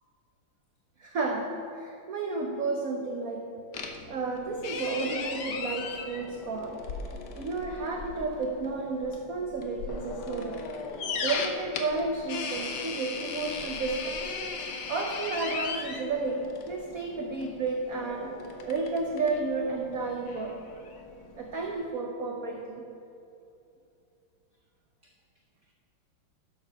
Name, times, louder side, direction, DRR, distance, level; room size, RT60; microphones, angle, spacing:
voice 1, 1.0-3.5 4.1-6.8 7.3-10.6 11.2-14.3 14.9-18.4 18.7-20.6 21.3-22.8, right 3 dB, 60° right, 1 dB, 0.9 m, -32 dB
sound 1, 3.7-21.9, left 4 dB, 60° left, 1.3 m, -38 dB
12.0 x 7.2 x 5.7 m, 2.7 s
omnidirectional pair, 2.4 m